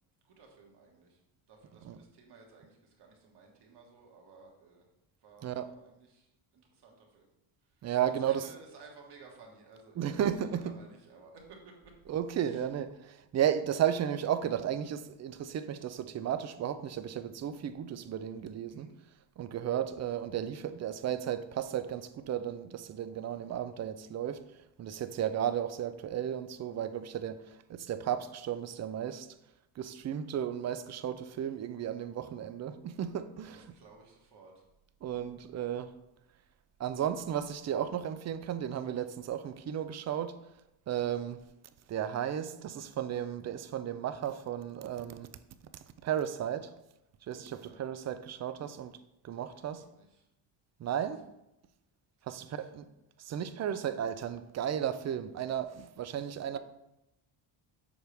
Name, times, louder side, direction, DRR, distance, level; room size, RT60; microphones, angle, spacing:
voice 1, 0.2-1.2 1.5-4.9 5.2-7.3 7.6-10.1 10.5-11.9 12.4-12.7 18.7-18.9 33.5-34.6 38.9-39.0 47.5-47.8 49.4-50.3 52.2-52.7, right 4 dB, 50° right, 1.8 m, -56 dB
voice 2, 7.8-8.5 10.0-10.6 12.1-18.9 19.4-24.4 24.8-29.3 29.8-33.6 35.0-35.9 36.8-40.4 40.9-41.4 41.9-45.3 46.0-46.7 47.3-49.0 49.2-49.8 50.8-51.3 52.3-52.9 53.2-56.6, right 10 dB, 35° right, 0.4 m, -34 dB
7.2 x 4.6 x 3.4 m
cardioid pair, 110°, 50 cm